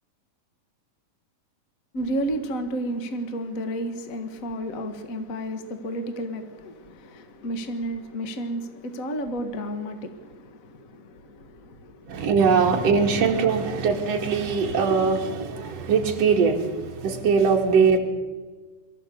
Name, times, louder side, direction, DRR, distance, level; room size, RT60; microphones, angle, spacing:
voice 1, 1.9-12.3, right 1 dB, 55° left, 0.9 m, -32 dB
voice 2, 12.1-18.0, right 5 dB, 50° right, 2.9 m, -21 dB
23.0 x 14.0 x 8.4 m
omnidirectional pair, 4.0 m